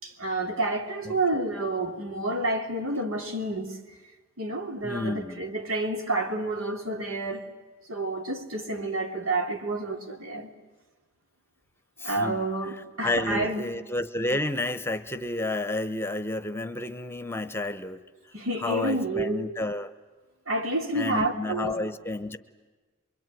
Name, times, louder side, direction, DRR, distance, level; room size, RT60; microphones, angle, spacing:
voice 1, 0.0-3.8 4.4-7.4 7.9-10.5 12.0-13.7 18.3-19.4 20.5-21.8, right 2 dB, 80° right, 3.2 m, -29 dB
voice 2, 1.0-1.5 4.8-5.4 12.0-18.0 18.6-19.9 20.9-22.4, left 2 dB, 10° left, 1.0 m, -31 dB
26.0 x 23.5 x 9.2 m
head